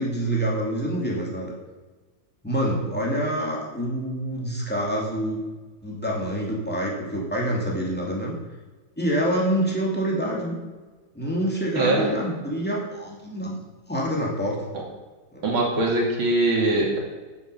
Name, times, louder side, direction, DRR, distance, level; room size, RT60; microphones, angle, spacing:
voice 1, 0.0-1.5 2.4-5.4 5.8-8.3 9.0-10.6 11.1-13.6 13.9-14.6 15.3-15.4, right 1 dB, 5° left, -4 dB, 2.8 m, -26 dB
voice 2, 11.8-12.1 15.4-17.0, right 2 dB, 90° right, -1 dB, 3.5 m, -22 dB
10.0 x 8.1 x 7.0 m, 1.3 s
omnidirectional pair, 2.2 m